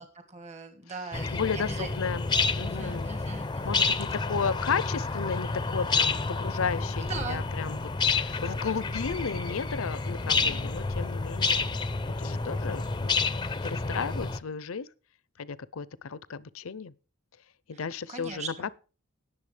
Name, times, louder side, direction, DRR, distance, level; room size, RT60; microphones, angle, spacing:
voice 1, 0.0-1.9 2.6-3.9 7.0-7.4 10.2-10.7 18.1-18.7, right 4 dB, 30° right, 1.6 m, -40 dB
voice 2, 1.0-2.3 2.6-3.1 3.6-11.6 12.1-13.2 13.6-14.9 15.4-16.9 17.7-18.7, left 6 dB, 65° left, 0.6 m, -34 dB
sound 1, 1.1-14.4, left 4 dB, 20° left, 0.6 m, -29 dB
18.5 x 7.0 x 3.3 m
head